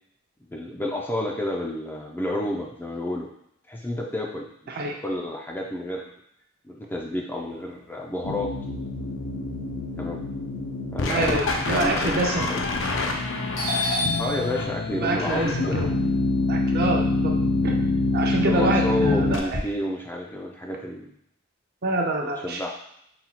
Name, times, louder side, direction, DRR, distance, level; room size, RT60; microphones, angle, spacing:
voice 1, 0.4-3.3 3.7-6.1 6.6-8.5 10.0-10.2 10.9-12.6 14.2-15.8 18.2-21.1 22.2-22.7, left 1 dB, 10° left, -1 dB, 0.4 m, -30 dB
sound 1, 8.2-19.4, left 2 dB, 65° left, 0.5 m, -26 dB
voice 2, 11.1-12.5 13.3-13.4 14.9-15.8 16.5-17.3 17.6-17.7 18.1-19.6 21.8-22.7, right 2 dB, 50° right, 1 dB, 0.6 m, -26 dB
Doorbell, 13.0-13.3 13.5-17.7 18.1-19.6, left 2 dB, 90° left, 1.1 m, -31 dB
4.0 x 2.3 x 4.2 m, 0.75 s
head